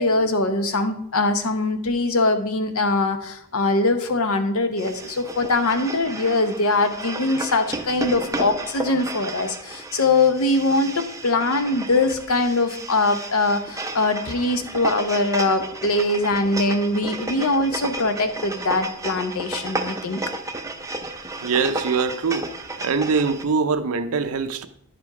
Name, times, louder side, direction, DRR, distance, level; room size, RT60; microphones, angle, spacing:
voice 1, 0.0-20.2, left 2 dB, 70° left, 0.8 m, -22 dB
sound 1, 4.8-23.4, right 2 dB, 15° right, 0.5 m, -33 dB
voice 2, 21.4-22.5 22.8-24.7, right 5 dB, 75° right, 0.6 m, -23 dB
10.0 x 5.1 x 4.8 m
head